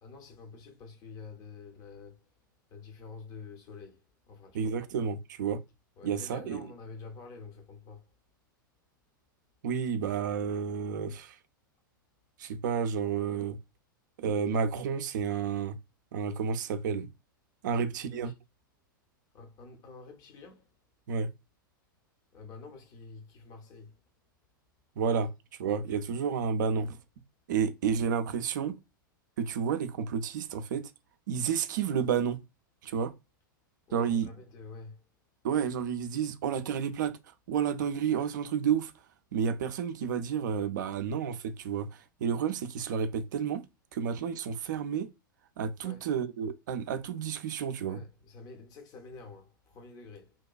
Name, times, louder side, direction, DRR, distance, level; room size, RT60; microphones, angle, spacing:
voice 1, 0.0-2.2 2.7-4.7 6.0-8.1 17.7-18.3 19.3-20.7 22.3-23.9 26.7-26.8 33.9-35.0 45.8-46.0 47.8-50.3, left 4 dB, 35° left, 0.7 m, -48 dB
voice 2, 4.5-5.6 6.0-6.6 9.6-11.4 12.4-13.6 14.2-15.8 16.1-17.1 17.6-18.3 21.1-21.3 25.0-25.3 25.6-27.0 27.5-28.8 29.4-30.9 31.3-32.4 32.8-33.1 33.9-34.3 35.4-37.2 37.5-38.9 39.3-43.6 43.9-45.1 45.6-48.0, right 7 dB, 60° right, 0.4 m, -31 dB
2.8 x 2.2 x 2.3 m
figure-of-eight pair, 100°, 11 cm